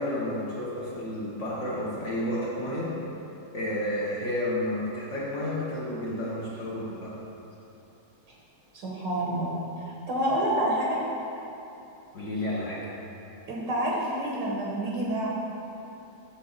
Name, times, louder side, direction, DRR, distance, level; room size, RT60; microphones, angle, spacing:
voice 1, 0.0-3.0 3.5-7.2 12.1-12.9, left 1 dB, 50° left, -6 dB, 1.0 m, -31 dB
voice 2, 8.7-11.0 13.5-15.4, right 1 dB, 75° right, -4 dB, 1.6 m, -28 dB
6.8 x 6.0 x 3.9 m, 2.9 s
omnidirectional pair, 2.0 m